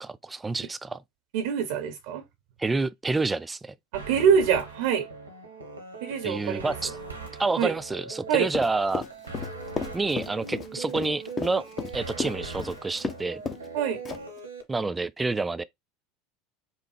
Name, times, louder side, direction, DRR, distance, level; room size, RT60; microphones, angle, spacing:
voice 1, 0.0-1.0 2.6-3.7 6.2-6.9 7.4-9.1 9.9-11.6 11.9-13.4 14.7-15.6, right 3 dB, 15° right, 0.3 m, -28 dB
voice 2, 1.3-2.2 3.9-5.1 6.0-6.7 7.6-7.7 8.3-8.5 13.7-14.0, right 7 dB, 60° right, 0.7 m, -24 dB
sound 1, 3.9-14.6, right 3 dB, 85° right, 0.9 m, -40 dB
Run, 8.5-13.2 13.5-13.7 14.0-14.4, left 5 dB, 25° left, 0.6 m, -33 dB
5.3 x 2.0 x 3.3 m
figure-of-eight pair, 75°, 0 cm